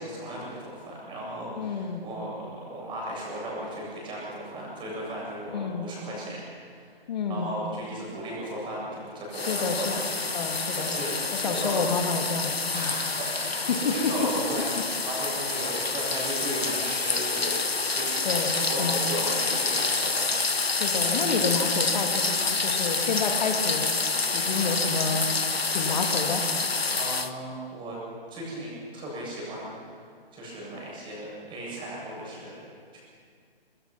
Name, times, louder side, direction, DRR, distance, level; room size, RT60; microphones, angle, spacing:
voice 1, 0.0-6.4 6.7-6.9 7.3-11.8 12.7-14.7 15.0-17.6 17.9-18.1 18.4-20.3 26.9-28.0 28.3-30.0 30.3-32.6 32.9-33.0, right 1 dB, 15° right, -4 dB, 7.7 m, -36 dB
voice 2, 1.6-2.0 5.5-5.9 7.1-7.5 9.3-10.0 10.3-11.0 11.3-12.9 13.7-14.3 18.2-18.5 18.8-19.0 20.7-23.9 24.3-25.3 25.7-26.4, left 5 dB, 45° left, 4 dB, 2.4 m, -29 dB
sound 1, 9.3-27.3, left 4 dB, 85° left, 1.3 m, -28 dB
24.5 x 21.5 x 6.0 m, 2.1 s
figure-of-eight pair, 135°, 30 cm